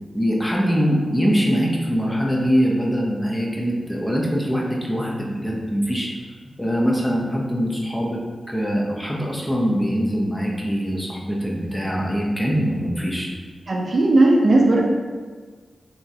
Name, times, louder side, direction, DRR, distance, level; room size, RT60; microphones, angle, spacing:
voice 1, 0.1-6.1 6.6-8.2 8.5-13.3, equal, 5° left, -2 dB, 0.8 m, -23 dB
voice 2, 13.7-14.8, right 2 dB, 50° right, -1 dB, 0.6 m, -16 dB
5.6 x 3.0 x 2.8 m, 1.5 s
wide cardioid pair, 105°, 0 cm